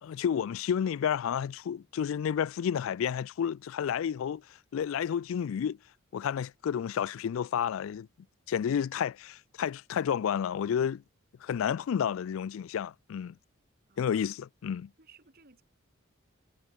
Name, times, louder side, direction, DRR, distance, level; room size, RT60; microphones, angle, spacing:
voice 1, 0.0-4.4 4.7-5.8 6.1-8.1 8.5-11.0 11.4-13.3 14.0-14.9, left 8 dB, 80° left, 0.3 m, -31 dB
voice 2, 13.9-14.3 15.0-15.6, right 5 dB, 50° right, 2.9 m, -59 dB
head